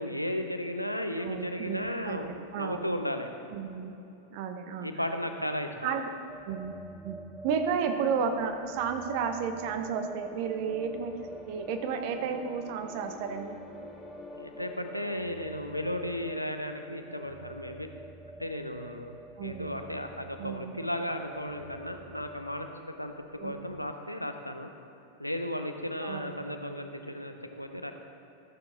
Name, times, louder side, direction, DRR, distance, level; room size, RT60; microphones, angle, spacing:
voice 1, 0.0-3.3 4.8-5.7 14.4-17.9 18.4-24.7 25.2-27.9, left 1 dB, 90° left, 6 dB, 0.6 m, -35 dB
voice 2, 1.2-2.9 3.5-3.9 4.3-5.0 5.8-6.1 6.4-7.2 7.4-13.6 19.4-19.8 20.4-20.8 23.4-23.7 26.0-26.4, right 6 dB, 45° right, 7 dB, 0.8 m, -33 dB
sound 1, 6.3-23.9, right 2 dB, 5° right, 0.4 m, -48 dB
sound 2, 9.3-18.2, left 3 dB, 15° left, 1.2 m, -51 dB
14.5 x 6.8 x 3.8 m, 2.9 s
figure-of-eight pair, 90°, 0 cm